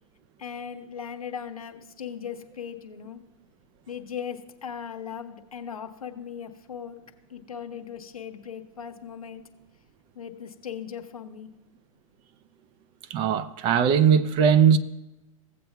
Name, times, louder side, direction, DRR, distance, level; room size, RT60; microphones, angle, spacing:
voice 1, 0.4-3.2 3.9-7.0 7.3-9.4 10.1-11.5, left 8 dB, 90° left, 1.1 m, -38 dB
voice 2, 13.1-14.8, right 7 dB, 25° right, 0.5 m, -19 dB
16.5 x 7.8 x 2.3 m
hypercardioid pair, 125°, 18 cm